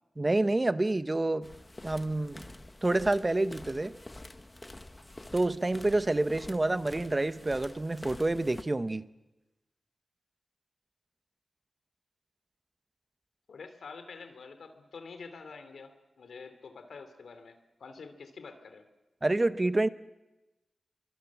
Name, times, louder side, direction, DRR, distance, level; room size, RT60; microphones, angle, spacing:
voice 1, 0.2-1.5 1.8-2.5 2.8-4.0 5.3-9.1 19.2-19.9, right 2 dB, 25° right, 13 dB, 0.9 m, -28 dB
sound 1, 1.4-8.6, left 2 dB, 20° left, 1.3 m, -47 dB
voice 2, 13.5-18.8, left 4 dB, 90° left, 8 dB, 2.9 m, -47 dB
29.5 x 23.5 x 7.3 m, 1.1 s
wide cardioid pair, 135°, 0 cm